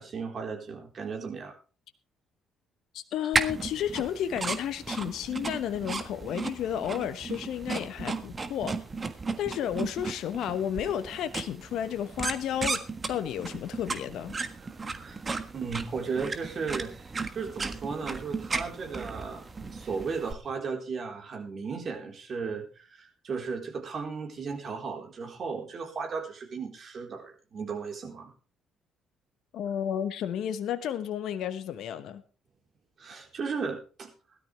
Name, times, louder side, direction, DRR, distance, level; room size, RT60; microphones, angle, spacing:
voice 1, 0.0-1.5 14.6-15.2 15.5-19.5 19.7-28.3 33.0-34.1, right 5 dB, 50° right, 4.1 m, -35 dB
voice 2, 2.9-8.7 9.4-12.8 13.1-14.3 29.5-32.2, left 9 dB, 65° left, 1.0 m, -32 dB
sound 1, 3.3-20.3, right 4 dB, 35° right, 1.5 m, -35 dB
17.0 x 12.5 x 3.4 m
hypercardioid pair, 50°, 0 cm